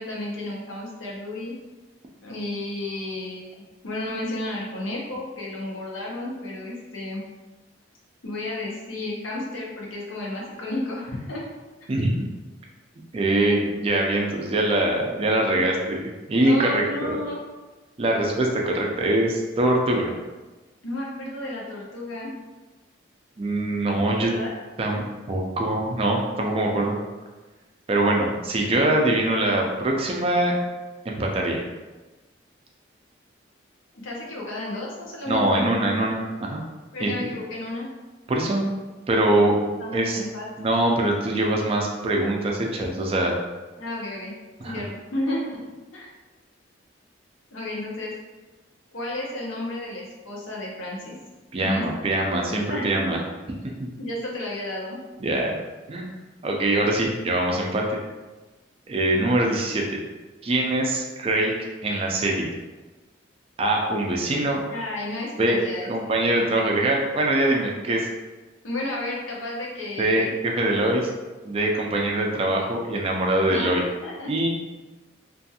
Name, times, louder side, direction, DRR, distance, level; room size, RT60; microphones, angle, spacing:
voice 1, 0.0-1.5 2.2-7.2 8.2-11.5 16.4-17.4 20.8-22.3 23.9-24.5 34.0-35.8 36.9-37.9 39.8-40.5 43.8-44.3 44.6-45.4 45.9-46.1 47.5-48.1 48.9-51.2 51.6-51.8 52.4-53.2 54.0-55.0 64.7-65.9 68.6-70.3 73.5-74.3, left 1 dB, 90° left, -3 dB, 0.7 m, -32 dB
voice 2, 11.9-12.3 13.1-17.2 18.0-20.1 23.4-24.3 24.8-27.0 27.9-30.5 31.1-31.6 35.3-36.6 37.0-37.1 38.3-38.7 39.1-40.2 40.6-43.3 44.6-44.7 51.5-53.2 55.2-55.6 55.9-56.1 56.4-58.0 58.9-59.8 60.4-61.5 61.8-62.5 63.6-64.6 65.4-65.6 65.9-68.1 70.0-71.1 71.4-73.8 74.3-74.5, right 1 dB, 30° right, 0 dB, 0.3 m, -23 dB
2.5 x 2.4 x 2.7 m, 1.2 s
head